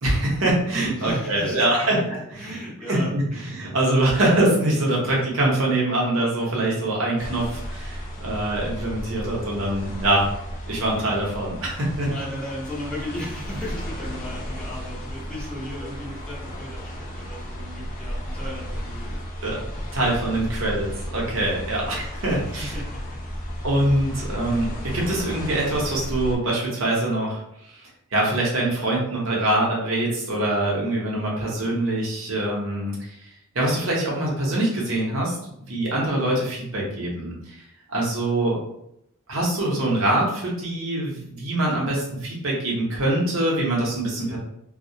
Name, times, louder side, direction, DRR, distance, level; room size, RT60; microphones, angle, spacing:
voice 1, 0.0-2.6 2.9-10.3 10.7-12.1 19.4-19.6 19.9-22.7 23.6-27.4 27.7-33.1 33.5-35.4 35.7-37.6 37.9-38.6 39.3-44.4, right 1 dB, 65° right, -3 dB, 0.8 m, -24 dB
voice 2, 0.9-3.6 5.0-5.2 12.0-19.2 21.8-23.2 33.6-33.9 44.2-44.4, equal, 5° left, -7 dB, 0.7 m, -36 dB
sound 1, 7.2-26.4, equal, 40° left, 0.5 m, -34 dB
2.3 x 2.1 x 2.6 m, 0.76 s
head